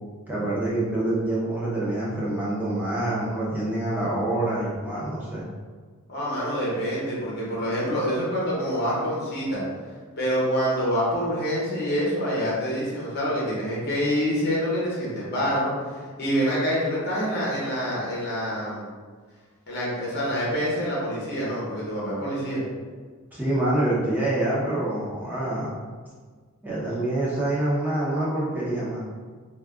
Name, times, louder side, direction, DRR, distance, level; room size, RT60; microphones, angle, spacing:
voice 1, 0.3-5.4 23.3-25.8 26.6-29.1, right 1 dB, 10° right, -7 dB, 0.6 m, -26 dB
voice 2, 6.1-9.6 10.2-15.7 16.2-18.9 19.7-22.6, equal, 45° left, -6 dB, 0.8 m, -26 dB
2.4 x 2.2 x 3.5 m, 1.5 s
head